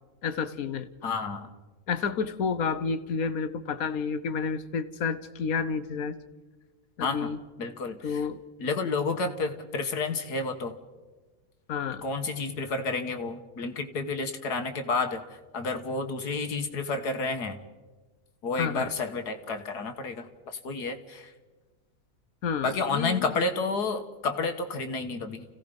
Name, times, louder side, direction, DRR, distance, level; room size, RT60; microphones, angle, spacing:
voice 1, 0.2-0.9 1.9-6.2 7.0-7.4 8.0-8.4 11.7-12.0 18.6-18.9 22.4-23.3, left 5 dB, 65° left, 12 dB, 1.4 m, -30 dB
voice 2, 1.0-1.5 7.0-7.3 7.6-8.2 8.6-10.7 12.0-15.2 15.5-17.6 18.4-21.3 22.6-25.4, left 3 dB, 80° left, 7 dB, 2.0 m, -30 dB
29.5 x 16.5 x 5.3 m, 1.2 s
omnidirectional pair, 1.7 m